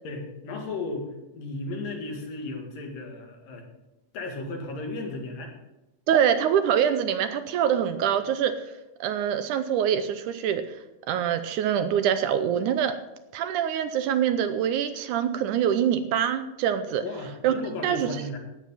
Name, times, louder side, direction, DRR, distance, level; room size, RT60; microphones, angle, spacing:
voice 1, 0.0-3.7 4.1-5.5 17.0-18.4, left 2 dB, 80° left, 1 dB, 3.7 m, -35 dB
voice 2, 6.1-8.5 9.0-10.6 11.1-13.0 13.3-17.0 17.4-17.5 17.8-18.1, right 9 dB, 75° right, 10 dB, 2.1 m, -24 dB
11.5 x 9.1 x 5.8 m, 0.95 s
omnidirectional pair, 3.8 m